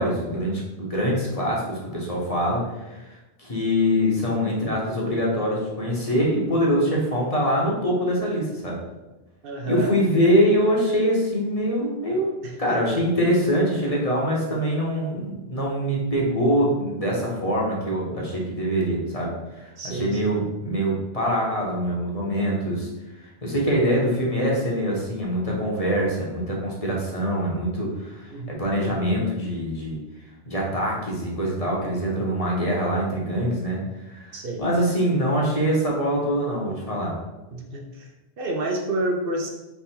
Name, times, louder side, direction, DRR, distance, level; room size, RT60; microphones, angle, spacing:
voice 1, 0.0-8.8 9.7-22.9 23.2-30.0 30.5-33.8 34.1-37.1, equal, 35° left, -3 dB, 0.9 m, -24 dB
voice 2, 9.4-9.9 12.4-12.6 19.8-20.3 28.3-28.5 34.3-34.7 37.5-38.1 38.4-39.5, right 1 dB, 65° right, 1 dB, 0.8 m, -29 dB
3.5 x 3.3 x 4.3 m, 1.0 s
omnidirectional pair, 1.1 m